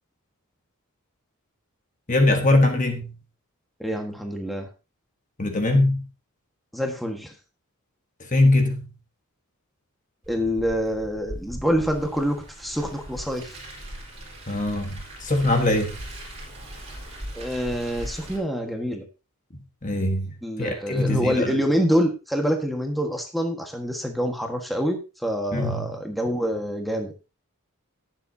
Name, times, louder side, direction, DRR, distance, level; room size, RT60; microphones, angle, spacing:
voice 1, 2.1-3.1 5.4-6.1 8.2-8.9 14.5-16.0 19.8-20.3 20.6-21.6 25.5-25.9, left 2 dB, 35° left, 5 dB, 1.5 m, -22 dB
voice 2, 3.8-4.7 6.7-7.3 10.3-13.6 17.3-19.1 20.4-27.1, equal, ahead, 3 dB, 1.5 m, -26 dB
Car, 10.2-18.4, right 1 dB, 30° right, 3.9 m, -39 dB
19.0 x 7.4 x 2.8 m, 0.29 s
head